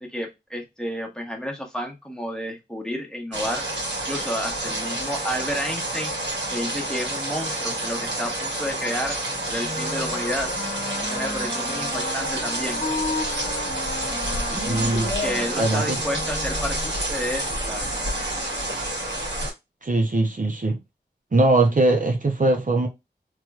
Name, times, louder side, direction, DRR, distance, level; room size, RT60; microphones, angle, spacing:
voice 1, 0.1-3.7 4.1-6.1 6.5-10.5 11.0-12.8 15.2-17.9, equal, 5° left, 1.1 m, -31 dB
sound 1, 3.3-19.5, right 1 dB, 90° right, 1.6 m, -28 dB
Wind instrument woodwind instrument, 9.6-17.0, left 2 dB, 45° left, 0.9 m, -34 dB
voice 2, 14.5-15.1 15.6-16.0 19.8-20.8 21.3-22.9, right 2 dB, 50° right, 0.7 m, -21 dB
3.1 x 3.1 x 2.3 m
wide cardioid pair, 55°, 18 cm